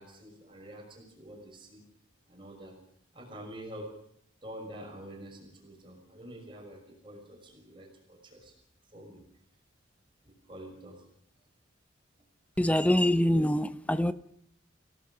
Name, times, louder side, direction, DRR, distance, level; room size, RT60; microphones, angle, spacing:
voice 1, 0.0-1.8 2.3-2.8 3.1-3.9 4.4-8.5 8.9-9.2 10.2-11.0, right 1 dB, 25° right, 1 dB, 6.0 m, -47 dB
voice 2, 12.6-14.1, left 1 dB, 5° left, 13 dB, 0.9 m, -24 dB
29.5 x 17.5 x 6.3 m, 0.67 s
head